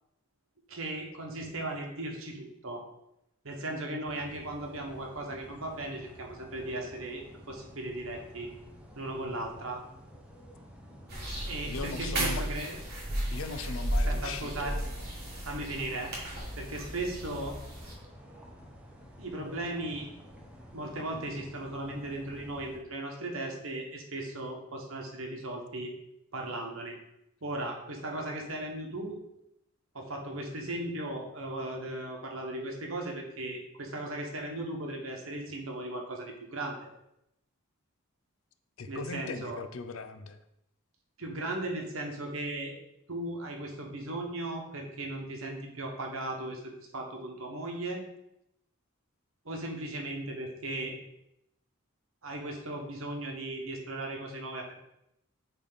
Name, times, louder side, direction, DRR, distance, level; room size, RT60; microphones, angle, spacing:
voice 1, 0.7-2.8 3.4-8.5 8.9-9.8 11.5-12.7 14.0-14.8 15.4-16.1 16.6-17.6 19.2-20.1 20.7-25.9 26.3-27.0 27.4-29.2 29.9-36.9 38.9-39.6 41.2-42.7 43.1-48.0 49.4-50.9 52.2-54.7, right 1 dB, 65° right, 1 dB, 1.3 m, -37 dB
sound 1, 4.0-22.8, equal, 5° right, 0.8 m, -51 dB
sound 2, 11.1-17.9, right 1 dB, 45° right, 1.9 m, -34 dB
voice 2, 11.6-12.5 13.3-15.1 38.8-40.4, left 4 dB, 70° left, 9 dB, 0.5 m, -39 dB
8.3 x 3.4 x 4.0 m, 0.82 s
head